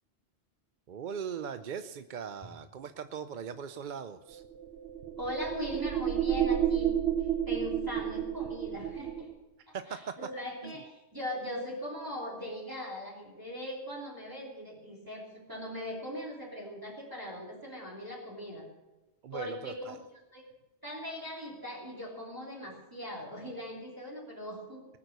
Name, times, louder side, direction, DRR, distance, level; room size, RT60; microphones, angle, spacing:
voice 1, 0.9-4.4 9.7-10.1 10.6-10.8 19.2-20.0, right 7 dB, 55° right, 10 dB, 0.6 m, -40 dB
sound 1, 4.4-9.3, right 10 dB, 70° right, 1.2 m, -31 dB
voice 2, 5.2-7.0 7.4-9.3 9.7-18.7 19.3-20.0 20.3-20.4 20.8-24.9, equal, 20° right, -3 dB, 3.2 m, -40 dB
19.5 x 9.1 x 6.6 m, 1.1 s
omnidirectional pair, 1.1 m